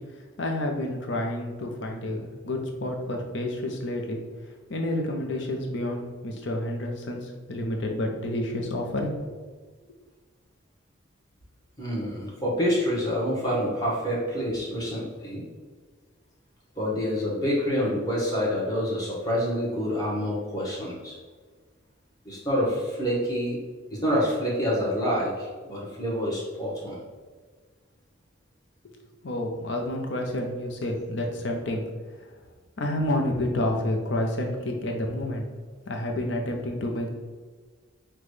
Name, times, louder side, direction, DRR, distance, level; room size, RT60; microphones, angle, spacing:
voice 1, 0.4-4.2 4.7-9.4 29.2-31.8 32.8-35.4 35.9-37.1, left 1 dB, 65° left, 1 dB, 0.7 m, -29 dB
voice 2, 11.8-15.4 16.8-21.1 22.2-23.6 23.9-27.0, equal, 20° left, -5 dB, 1.1 m, -27 dB
5.8 x 2.2 x 3.2 m, 1.4 s
head